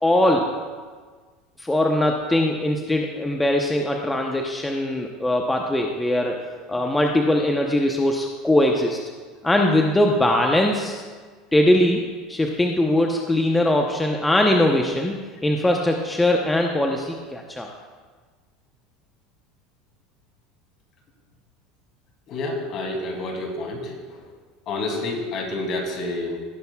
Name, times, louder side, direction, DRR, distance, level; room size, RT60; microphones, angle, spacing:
voice 1, 0.0-0.5 1.6-6.4 6.7-9.0 9.4-11.0 11.5-12.0 12.3-17.7, left 1 dB, 10° left, 2 dB, 0.8 m, -21 dB
voice 2, 22.3-24.2 24.7-26.4, left 2 dB, 50° left, 1 dB, 2.7 m, -29 dB
17.0 x 9.3 x 2.3 m, 1.5 s
supercardioid pair, 105°, 0 cm